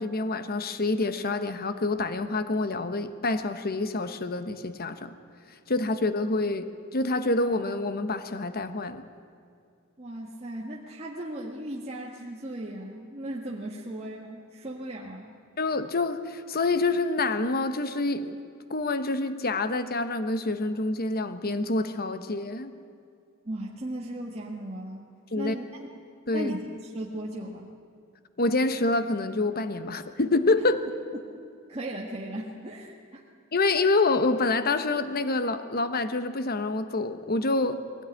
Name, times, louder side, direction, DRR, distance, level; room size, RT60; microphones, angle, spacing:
voice 1, 0.0-5.2 5.7-6.7 6.9-9.1 15.6-18.4 18.7-22.7 25.3-25.5 26.3-26.5 28.4-30.8 33.5-38.0, left 2 dB, 45° left, 11 dB, 1.1 m, -27 dB
voice 2, 10.0-15.3 23.4-25.1 25.3-25.9 26.3-27.7 31.7-33.2, right 1 dB, 30° right, -3 dB, 1.7 m, -37 dB
21.5 x 17.5 x 9.9 m, 2.4 s
head